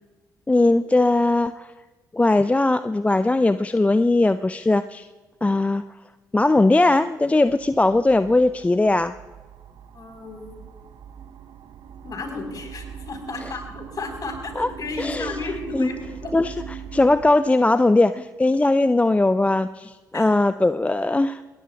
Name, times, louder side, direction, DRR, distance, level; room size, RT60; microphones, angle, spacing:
voice 1, 0.5-1.7 2.1-5.1 5.4-5.8 6.3-9.1 13.4-13.5 14.6-14.7 15.0-15.4 15.7-15.9 16.3-21.4, left 2 dB, 15° left, 13 dB, 0.5 m, -19 dB
sound 1, 7.5-17.3, right 8 dB, 55° right, 0.9 m, -41 dB
voice 2, 9.9-10.6 12.0-16.3 20.1-20.2, left 3 dB, 40° left, 3 dB, 4.2 m, -33 dB
28.0 x 20.0 x 2.4 m, 1.3 s
figure-of-eight pair, 40°, 9 cm